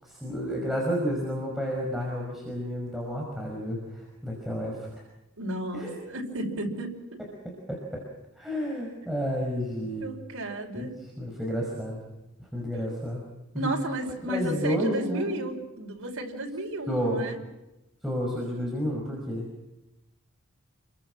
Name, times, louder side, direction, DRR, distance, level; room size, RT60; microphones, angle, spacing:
voice 1, 0.0-4.9 5.7-6.0 7.4-8.0 8.4-10.1 10.8-10.9 11.2-12.0 12.4-13.2 13.5-13.7 14.2-15.3 16.9-17.2 18.0-19.5, equal, ahead, -2 dB, 5.5 m, -31 dB
voice 2, 5.4-6.9 10.0-10.9 13.6-17.4, right 1 dB, 90° right, 0 dB, 5.3 m, -33 dB
29.5 x 23.0 x 6.2 m, 0.96 s
head